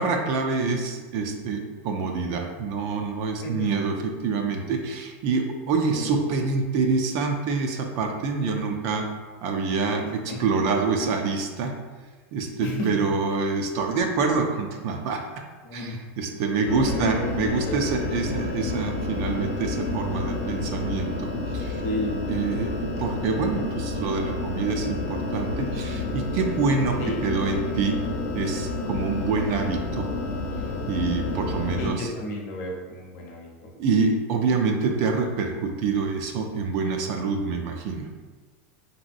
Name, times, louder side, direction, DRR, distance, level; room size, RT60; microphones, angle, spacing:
voice 1, 0.0-9.0 9.4-11.7 12.3-15.4 15.7-21.3 21.5-21.8 22.3-28.0 28.3-30.1 30.9-32.1 33.8-38.1, right 4 dB, 45° right, 4 dB, 0.3 m, -26 dB
voice 2, 3.4-3.7 5.9-6.1 10.3-10.4 12.6-12.9 15.6-16.0 16.9-17.2 17.7-17.8 21.8-22.1 22.5-22.6 23.0-23.1 27.0-27.2 31.8-33.7, left 1 dB, 45° left, -1 dB, 0.7 m, -32 dB
sound 1, 16.7-31.9, left 2 dB, 85° left, 0.7 m, -30 dB
3.0 x 2.7 x 2.5 m, 1.3 s
supercardioid pair, 155°, 7 cm